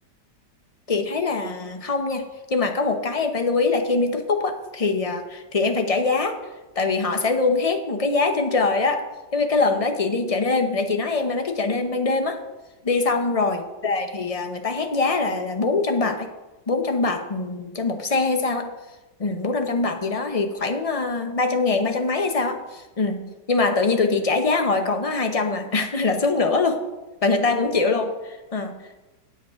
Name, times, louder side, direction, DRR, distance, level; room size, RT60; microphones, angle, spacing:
voice 1, 0.9-2.2 2.5-6.4 6.8-9.1 9.3-12.4 12.8-16.3 16.7-18.7 19.2-26.8 27.2-28.8, left 3 dB, 40° left, 6 dB, 0.5 m, -23 dB
8.9 x 8.0 x 5.6 m, 1.1 s
omnidirectional pair, 1.9 m